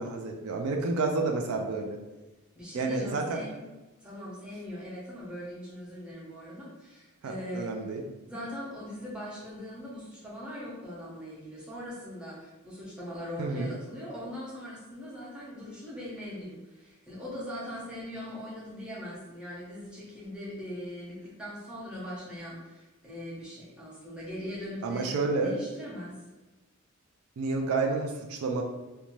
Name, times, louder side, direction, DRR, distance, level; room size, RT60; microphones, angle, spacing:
voice 1, 0.0-2.0 2.7-3.4 7.2-8.0 13.4-13.7 24.8-25.6 27.4-28.6, right 3 dB, 70° right, 3 dB, 0.4 m, -30 dB
voice 2, 2.5-3.6 4.0-7.8 8.3-25.1 25.4-26.2, equal, 5° right, -7 dB, 0.7 m, -40 dB
2.6 x 2.2 x 3.0 m, 1.1 s
head